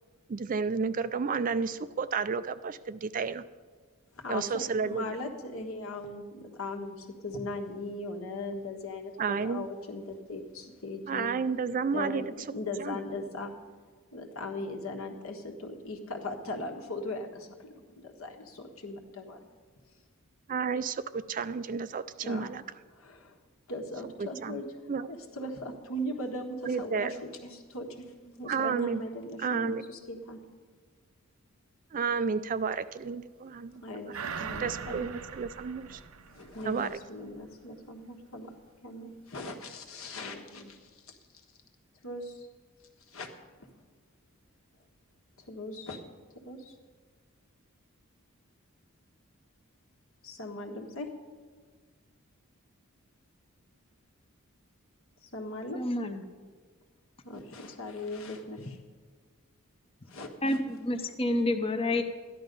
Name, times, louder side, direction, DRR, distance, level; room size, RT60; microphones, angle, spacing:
voice 1, 0.3-3.4 4.3-5.2 9.2-9.7 11.1-12.2 12.8-13.0 20.5-22.6 24.2-24.6 24.9-25.1 26.7-27.1 28.5-29.0 29.4-29.8 31.9-33.8 34.1-34.2 34.6-36.0 36.6-37.0, right 5 dB, 40° right, 13 dB, 0.4 m, -31 dB
voice 2, 4.1-11.3 11.9-13.5 14.1-19.5 22.2-22.5 22.9-23.4 23.7-24.7 25.1-30.4 33.8-35.1 35.9-36.0 36.3-38.5 38.8-41.2 42.0-42.5 43.1-43.3 45.5-46.0 46.3-46.7 50.2-51.1 55.2-55.8 57.2-58.8 60.1-60.6, left 1 dB, 70° left, 3 dB, 1.5 m, -39 dB
sound 1, 34.1-37.0 37.4-37.5, right 6 dB, 75° right, 0.7 m, -41 dB
voice 3, 55.8-56.2 60.4-62.0, left 1 dB, 25° left, 6 dB, 0.7 m, -28 dB
13.0 x 10.5 x 5.3 m, 1.5 s
head